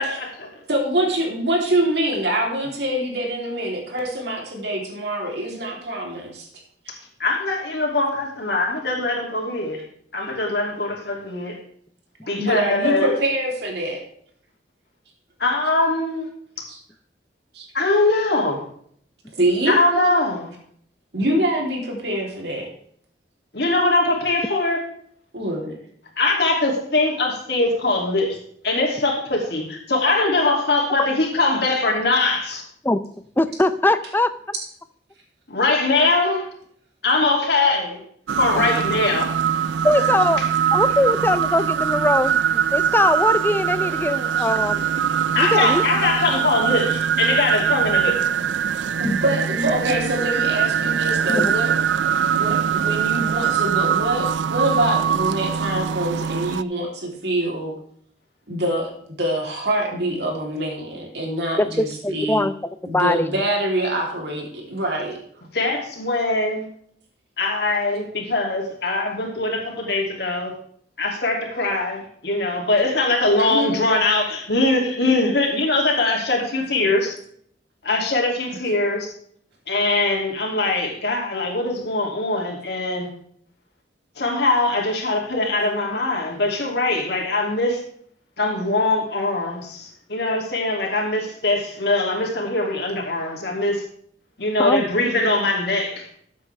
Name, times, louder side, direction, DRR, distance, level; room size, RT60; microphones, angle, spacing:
voice 1, 0.0-0.5 7.2-9.8 10.1-11.6 12.3-13.1 15.4-16.3 17.7-18.6 19.7-20.5 23.5-24.8 26.2-28.4 28.6-32.6 35.5-36.5 37.0-38.0 38.4-39.3 45.3-48.3 65.5-66.7 67.4-70.5 71.0-77.1 77.8-79.1 79.7-83.1 84.2-87.8 88.4-93.8 94.4-96.1, left 2 dB, 65° left, 0 dB, 2.7 m, -22 dB
voice 2, 0.7-6.5 6.9-7.0 12.2-14.0 16.7-16.8 17.5-17.7 19.4-19.8 21.1-22.7 25.3-25.8 49.0-51.7 52.3-57.7 58.5-58.9 59.2-62.4 62.9-65.2 73.5-73.7, right 1 dB, 70° right, 0 dB, 3.3 m, -24 dB
voice 3, 33.4-34.3 38.6-38.7 39.8-40.4 40.7-44.8 45.4-45.8 51.3-51.5 61.6-62.5 62.9-63.3 94.6-94.9, left 1 dB, 10° left, 12 dB, 0.5 m, -21 dB
sound 1, 38.3-56.6, right 8 dB, 90° right, 0.4 m, -22 dB
14.0 x 8.3 x 3.4 m, 0.62 s
head